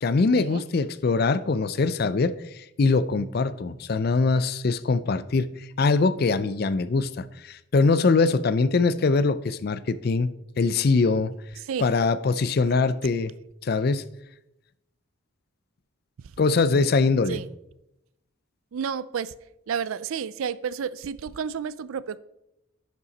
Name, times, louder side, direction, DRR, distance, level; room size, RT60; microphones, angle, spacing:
voice 1, 0.0-10.3 10.6-11.3 11.8-13.3 13.6-14.0 16.4-17.4, left 4 dB, 45° left, 14 dB, 0.4 m, -23 dB
voice 2, 11.6-11.9 17.3-17.5 18.7-19.3 19.7-22.2, right 7 dB, 80° right, 18 dB, 0.4 m, -31 dB
10.5 x 5.6 x 4.1 m, 0.87 s
head